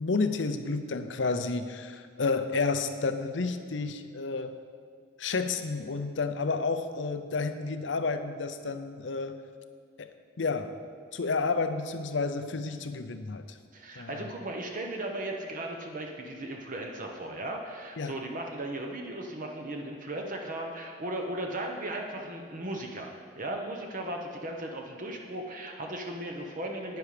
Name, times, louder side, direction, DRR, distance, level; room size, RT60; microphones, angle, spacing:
voice 1, 0.0-4.5 5.2-9.4 10.0-10.7 11.1-13.6 14.0-14.3 18.0-18.1, left 4 dB, 80° left, 9 dB, 0.7 m, -31 dB
voice 2, 13.7-27.0, right 1 dB, 45° right, 1 dB, 1.0 m, -36 dB
10.5 x 9.4 x 5.0 m, 2.1 s
head